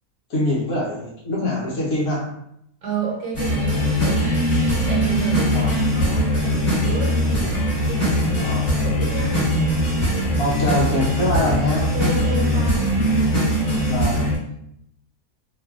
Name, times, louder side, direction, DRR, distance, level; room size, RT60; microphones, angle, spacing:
voice 1, 0.3-2.3 5.5-5.7 8.3-8.7 10.4-12.0 13.9-14.3, left 1 dB, 65° left, -5 dB, 1.1 m, -24 dB
voice 2, 2.8-9.4 11.9-13.0, right 4 dB, 70° right, -3 dB, 1.2 m, -31 dB
sound 1, 3.3-14.4, equal, 20° left, 1.3 m, -21 dB
3.1 x 2.3 x 2.3 m, 0.75 s
omnidirectional pair, 1.7 m